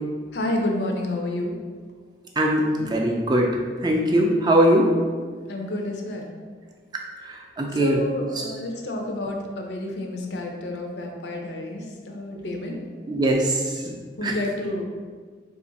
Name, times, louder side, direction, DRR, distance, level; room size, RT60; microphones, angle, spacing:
voice 1, 0.3-1.6 5.5-6.3 7.7-12.8 14.2-14.8, left 1 dB, 75° left, 1 dB, 0.5 m, -29 dB
voice 2, 2.4-3.6 3.8-4.9 7.2-8.0 13.1-14.0 14.2-14.4, right 1 dB, 25° right, 0 dB, 0.4 m, -21 dB
3.3 x 2.4 x 3.9 m, 1.6 s
head